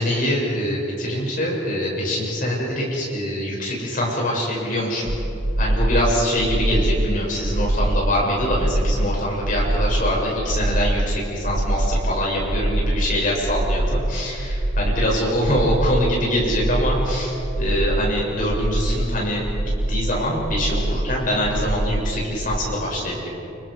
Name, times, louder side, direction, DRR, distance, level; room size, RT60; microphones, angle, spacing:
voice 1, 0.0-5.1 5.6-23.3, equal, 45° left, -4 dB, 7.9 m, -24 dB
sound 1, 5.1-22.7, right 1 dB, 75° right, 1.2 m, -24 dB
30.0 x 29.5 x 5.2 m, 2.8 s
head